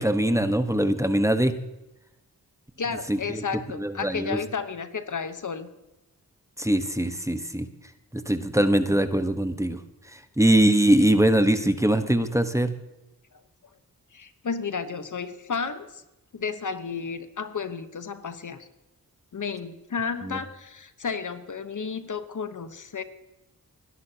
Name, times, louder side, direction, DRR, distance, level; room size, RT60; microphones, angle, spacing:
voice 1, 0.0-1.5 3.1-3.4 3.8-4.4 6.6-7.7 8.1-9.8 10.1-12.8 20.2-20.4, right 1 dB, 10° right, 9 dB, 1.2 m, -22 dB
voice 2, 2.8-5.7 14.1-16.0 16.3-18.7 19.3-23.0, left 5 dB, 55° left, 10 dB, 1.1 m, -32 dB
21.0 x 11.0 x 2.9 m, 0.98 s
cardioid pair, 55°, 36 cm